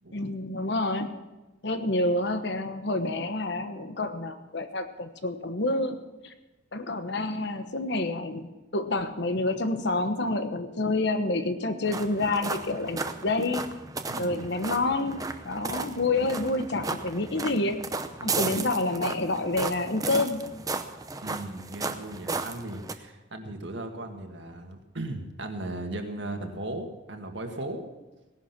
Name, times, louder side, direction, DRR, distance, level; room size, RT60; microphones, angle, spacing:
voice 1, 0.1-1.1 1.6-6.0 6.2-6.3 6.7-8.5 8.7-13.7 14.2-17.8 18.2-20.5, left 2 dB, 55° left, 9 dB, 1.2 m, -28 dB
sound 1, 11.8-22.9, right 3 dB, 20° right, 0.7 m, -35 dB
voice 2, 14.1-14.4 18.2-18.6 21.2-27.8, right 1 dB, 65° right, 4 dB, 1.8 m, -37 dB
17.5 x 11.5 x 6.0 m, 1.1 s
head